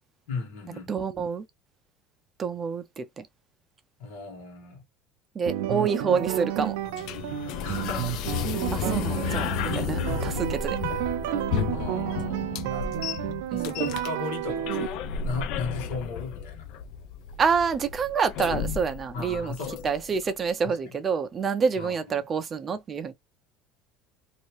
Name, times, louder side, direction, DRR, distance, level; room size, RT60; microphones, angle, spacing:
voice 1, 0.3-0.9 4.0-4.8 7.6-8.3 9.2-9.5 11.7-16.7 19.1-19.9 20.6-20.9 21.8-22.3, left 4 dB, 80° left, 1.7 m, -37 dB
voice 2, 0.9-1.4 2.4-3.3 5.4-6.8 8.7-10.8 13.5-13.7 17.4-19.5 19.8-23.1, right 6 dB, 20° right, 0.5 m, -27 dB
sound 1, 5.5-14.9, right 12 dB, 80° right, 0.5 m, -31 dB
sound 2, 6.2-20.2, left 8 dB, 55° left, 0.4 m, -33 dB
2.8 x 2.7 x 3.0 m
cardioid pair, 160°, 0 cm